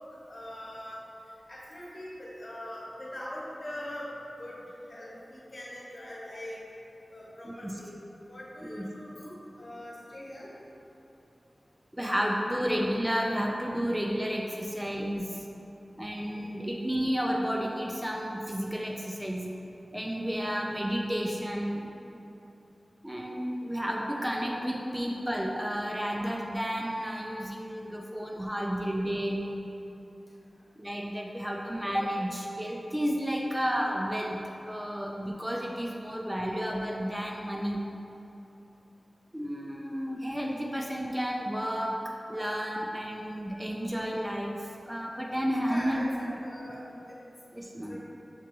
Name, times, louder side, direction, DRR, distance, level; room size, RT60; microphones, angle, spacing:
voice 1, 0.3-1.0 1.5-4.1 4.4-4.6 4.9-6.6 7.1-8.0 8.3-10.5 45.7-46.8 47.1-47.2 47.9-48.0, left 1 dB, 50° left, -7 dB, 1.0 m, -42 dB
voice 2, 7.4-7.8 8.7-8.9 11.9-15.4 16.0-19.5 19.9-21.9 23.0-29.5 30.8-37.8 39.3-42.0 42.3-46.4 47.5-48.0, equal, 10° right, -1 dB, 0.3 m, -32 dB
5.9 x 2.5 x 2.9 m, 3.0 s
wide cardioid pair, 60°, 0 cm